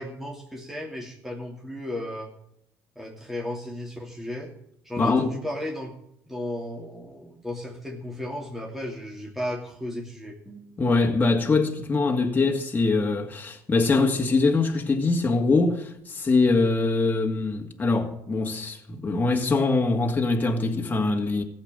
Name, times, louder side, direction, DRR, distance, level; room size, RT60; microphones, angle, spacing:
voice 1, 0.0-2.3 3.0-4.5 4.8-5.9 6.3-10.8, left 1 dB, 5° right, 2.8 m, -35 dB
voice 2, 5.0-5.4 10.8-21.4, left 3 dB, 25° left, 2.3 m, -23 dB
15.0 x 7.5 x 9.0 m
supercardioid pair, 80°, 7 cm